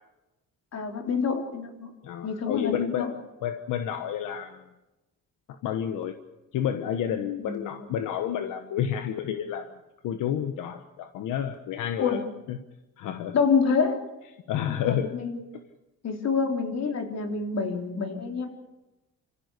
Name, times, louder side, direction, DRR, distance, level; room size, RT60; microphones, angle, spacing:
voice 1, 0.7-1.9 2.2-3.1 7.4-7.8 12.0-12.2 13.3-14.0 14.7-15.4 16.0-18.5, left 5 dB, 55° left, 3 dB, 3.7 m, -27 dB
voice 2, 2.0-3.1 3.4-4.6 5.5-6.2 6.5-9.7 10.0-12.2 12.5-12.6 13.0-13.3 14.5-15.1, left 9 dB, 85° left, 8 dB, 1.3 m, -30 dB
26.5 x 15.0 x 8.3 m, 1.0 s
cardioid pair, 90°, 30 cm